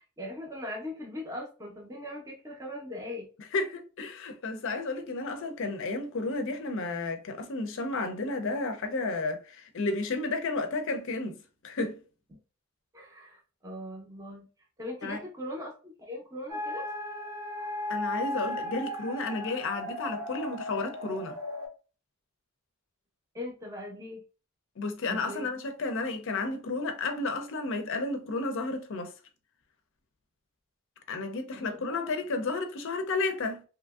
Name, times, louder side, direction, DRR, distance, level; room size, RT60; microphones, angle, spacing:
voice 1, 0.0-3.3 12.9-14.5 14.8-16.8 23.3-24.2 25.1-25.4 31.5-32.1, left 1 dB, 15° right, 0.5 m, -40 dB
voice 2, 3.5-12.0 15.0-15.2 17.9-21.4 24.8-29.1 31.1-33.6, left 3 dB, 60° left, 0.5 m, -32 dB
sound 1, 16.5-21.7, left 1 dB, 80° right, 1.0 m, -36 dB
2.8 x 2.5 x 2.3 m
head